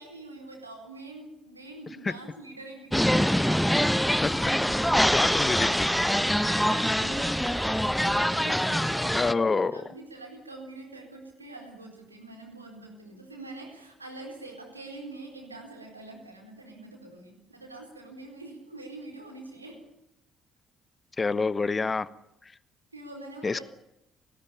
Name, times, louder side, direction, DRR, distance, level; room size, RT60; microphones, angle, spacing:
voice 1, 0.0-3.2 6.4-9.4 9.7-19.8 22.9-23.6, right 2 dB, 85° right, 3 dB, 4.1 m, -44 dB
wildwood moreyspierthursday, 2.9-9.3, equal, ahead, 0.9 m, -24 dB
voice 2, 4.8-5.9 9.1-9.9 21.2-22.1 23.4-23.6, left 4 dB, 30° left, 18 dB, 1.1 m, -28 dB
29.0 x 18.5 x 7.1 m, 0.86 s
figure-of-eight pair, 45°, 0 cm